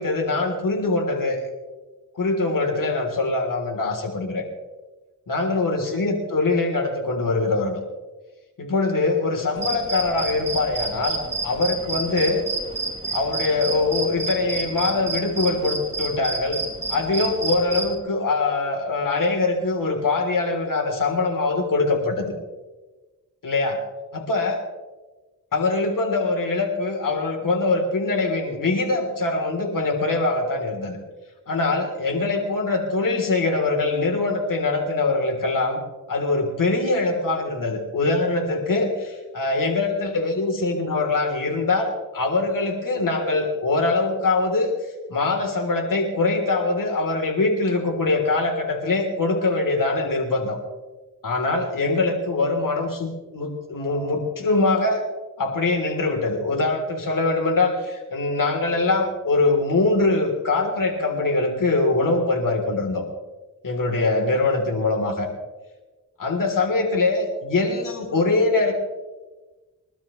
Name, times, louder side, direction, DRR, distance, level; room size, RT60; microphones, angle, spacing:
voice 1, 0.0-1.4 2.2-4.4 5.3-7.8 8.6-12.4 13.1-16.6 16.9-22.3 23.4-23.8 24.1-24.6 25.5-31.0 31.5-35.8 36.1-44.7 45.1-50.6 51.2-55.0 55.4-63.0 63.6-65.3 66.2-68.7, left 3 dB, 65° left, 3 dB, 3.5 m, -23 dB
sound 1, 9.6-17.9, right 3 dB, 20° right, 5.0 m, -30 dB
27.0 x 12.5 x 3.2 m, 1.2 s
cardioid pair, 70°, 35 cm